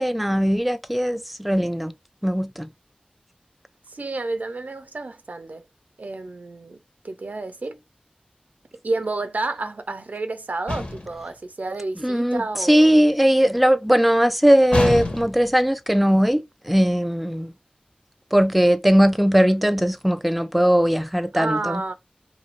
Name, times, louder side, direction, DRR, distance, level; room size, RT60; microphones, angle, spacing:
voice 1, 0.0-1.9 2.2-2.7 12.0-12.4 12.7-17.5 18.3-21.8, equal, ahead, 0.3 m, -19 dB
voice 2, 3.9-5.7 6.0-6.8 7.0-7.8 8.8-13.1 21.3-21.9, right 2 dB, 70° right, 0.4 m, -30 dB
sound 1, 10.7-11.2 14.7-15.5, left 2 dB, 45° left, 1.4 m, -25 dB
2.7 x 2.5 x 3.0 m
wide cardioid pair, 45°, 3 cm